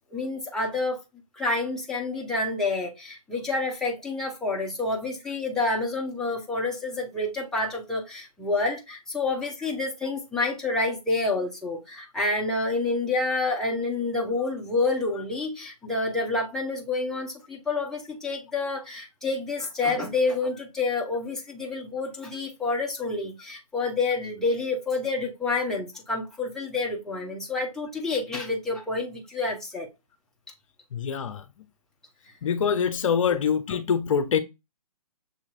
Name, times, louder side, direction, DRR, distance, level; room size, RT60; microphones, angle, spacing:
voice 1, 0.1-1.0 1.4-29.9 33.3-33.4, left 3 dB, 5° left, 1.1 m, -28 dB
voice 2, 30.9-31.4 32.4-34.4, left 7 dB, 60° left, 0.7 m, -24 dB
6.8 x 3.0 x 2.5 m
hypercardioid pair, 135°, 19 cm